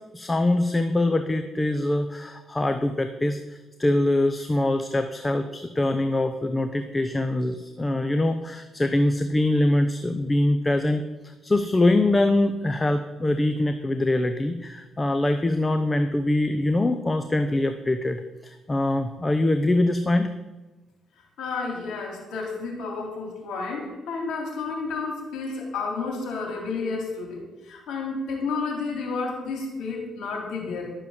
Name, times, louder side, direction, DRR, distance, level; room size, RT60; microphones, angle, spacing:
voice 1, 0.1-11.0 11.4-20.3, left 1 dB, 20° left, 8 dB, 0.8 m, -23 dB
voice 2, 21.4-30.9, left 4 dB, 80° left, 2 dB, 3.3 m, -31 dB
12.0 x 7.0 x 7.3 m, 1.1 s
cardioid pair, 90°, 0 cm